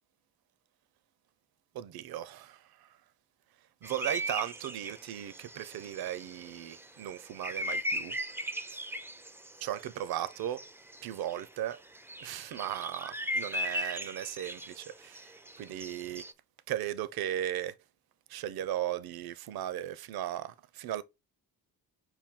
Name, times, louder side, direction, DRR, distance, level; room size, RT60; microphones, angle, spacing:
voice 1, 1.7-2.9 3.8-8.2 9.6-10.6 11.0-11.8 12.2-16.3 16.7-17.7 18.3-21.0, right 12 dB, 70° right, 0.5 m, -37 dB
sound 1, 3.8-11.4 11.7-16.3, equal, 5° right, 0.3 m, -38 dB
5.9 x 2.3 x 3.6 m
cardioid pair, 90°, 38 cm